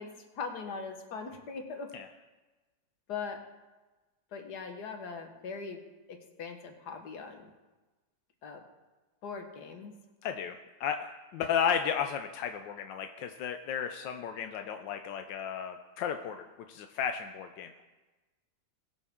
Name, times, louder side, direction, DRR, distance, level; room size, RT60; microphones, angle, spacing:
voice 1, 0.0-1.9 3.1-3.4 4.3-5.8 6.1-7.5 8.4-8.6 9.2-9.9, left 5 dB, 65° left, 5 dB, 1.8 m, -40 dB
voice 2, 10.2-17.8, left 8 dB, 85° left, 6 dB, 1.4 m, -34 dB
20.5 x 7.3 x 3.6 m, 1.2 s
omnidirectional pair, 1.9 m